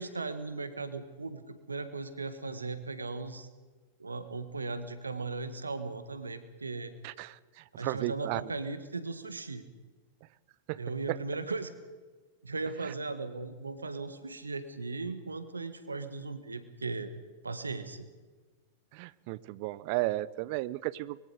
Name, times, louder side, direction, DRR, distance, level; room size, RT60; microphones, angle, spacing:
voice 1, 0.0-3.5 4.0-6.9 7.8-9.6 10.8-11.7 12.4-17.1 17.4-18.0, right 3 dB, 85° right, 11 dB, 1.6 m, -37 dB
voice 2, 7.0-8.5 10.7-11.2 12.8-12.9 18.9-21.2, right 18 dB, 50° right, 19 dB, 0.8 m, -34 dB
24.0 x 22.0 x 4.9 m, 1.3 s
figure-of-eight pair, 95°, 0 cm